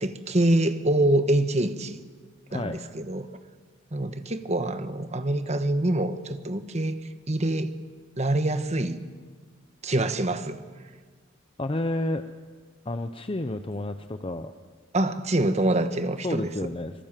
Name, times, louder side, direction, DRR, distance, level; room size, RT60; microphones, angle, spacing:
voice 1, 0.0-2.0 2.5-3.3 3.9-7.0 7.3-7.7 8.2-9.0 9.8-10.6 14.9-16.5, right 1 dB, 35° right, 9 dB, 1.3 m, -25 dB
voice 2, 11.6-12.2 12.9-14.5 16.2-16.9, left 1 dB, 25° left, 9 dB, 0.7 m, -30 dB
25.5 x 22.0 x 7.5 m, 1.5 s
head